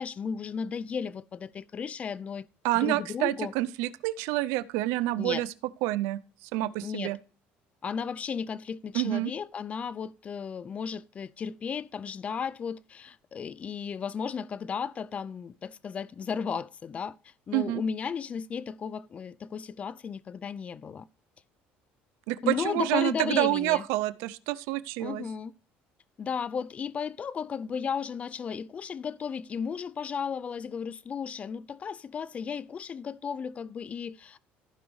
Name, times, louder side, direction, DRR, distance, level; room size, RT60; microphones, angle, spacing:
voice 1, 0.0-2.5 2.7-3.5 5.2-5.4 6.8-7.1 7.8-21.1 22.4-23.8 25.0-25.5 26.2-34.4, left 6 dB, 30° left, 0.4 m, -34 dB
voice 2, 2.6-5.5 5.8-7.2 8.9-9.3 17.5-17.8 22.3-25.2, right 17 dB, 85° right, 0.4 m, -28 dB
15.0 x 5.1 x 3.1 m
cardioid pair, 125°, 4 cm